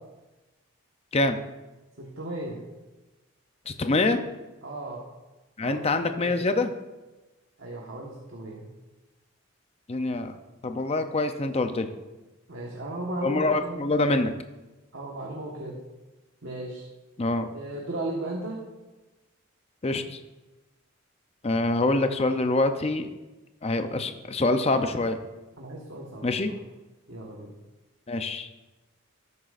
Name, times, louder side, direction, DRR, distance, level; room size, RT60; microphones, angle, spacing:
voice 1, 2.0-2.6 4.6-5.0 5.6-6.4 7.6-8.7 12.5-13.8 14.9-15.8 16.4-16.9 17.5-18.6 25.6-26.3 27.1-27.5, right 1 dB, 65° right, -2 dB, 1.4 m, -36 dB
voice 2, 3.7-4.2 5.6-6.7 9.9-10.4 10.6-11.9 13.2-14.3 17.2-17.5 19.8-20.2 21.4-23.1 23.6-25.2 26.2-26.5 28.1-28.5, left 2 dB, 30° left, 8 dB, 0.6 m, -25 dB
13.0 x 9.8 x 2.5 m, 1.1 s
head